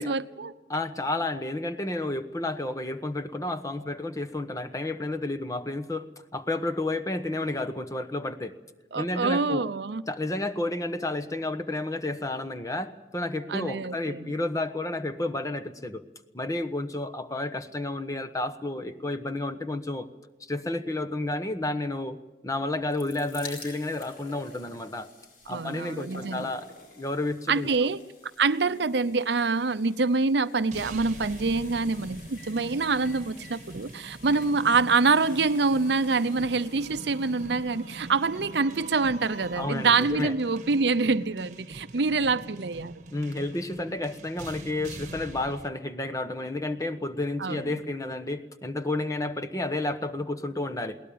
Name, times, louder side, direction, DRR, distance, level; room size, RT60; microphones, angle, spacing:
voice 1, 0.0-0.5 8.9-10.0 13.5-14.3 25.5-26.5 27.5-28.0 28.4-42.9 47.4-47.8, right 4 dB, 70° right, 0.7 m, -26 dB
voice 2, 0.7-8.5 8.9-9.7 10.1-16.0 16.3-20.1 20.4-22.2 22.4-25.1 25.5-27.9 39.6-40.3 43.1-51.0, left 2 dB, 20° left, 1.0 m, -31 dB
sound 1, 22.6-39.7 40.4-40.5 40.7-40.8, left 3 dB, 50° left, 4.7 m, -50 dB
sound 2, 30.7-45.7, right 2 dB, 40° right, 1.3 m, -44 dB
sound 3, 32.4-32.6 33.0-33.7 34.0-34.1 34.3-40.6, right 3 dB, 90° left, 3.3 m, -48 dB
22.0 x 18.5 x 8.6 m
head